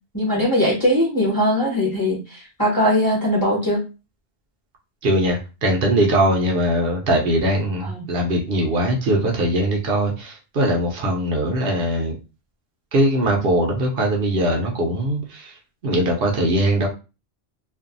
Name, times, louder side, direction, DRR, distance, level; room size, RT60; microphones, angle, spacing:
voice 1, 0.1-3.8 7.8-8.0, equal, 20° left, -4 dB, 1.0 m, -20 dB
voice 2, 5.0-12.1 12.9-15.5 15.8-16.9, right 1 dB, 70° right, 0 dB, 0.8 m, -21 dB
2.5 x 2.2 x 2.5 m, 0.31 s
omnidirectional pair, 1.1 m